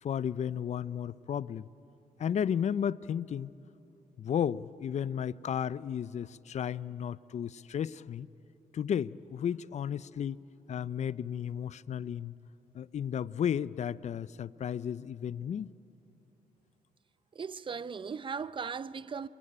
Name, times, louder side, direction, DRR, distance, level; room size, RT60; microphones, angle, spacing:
voice 1, 0.0-1.7 2.2-3.5 4.2-8.3 8.7-10.4 10.7-12.3 12.7-15.7, left 8 dB, 50° left, 0.5 m, -33 dB
voice 2, 17.3-19.3, right 6 dB, 35° right, 0.6 m, -38 dB
25.0 x 23.5 x 8.8 m
cardioid pair, 90°, 15 cm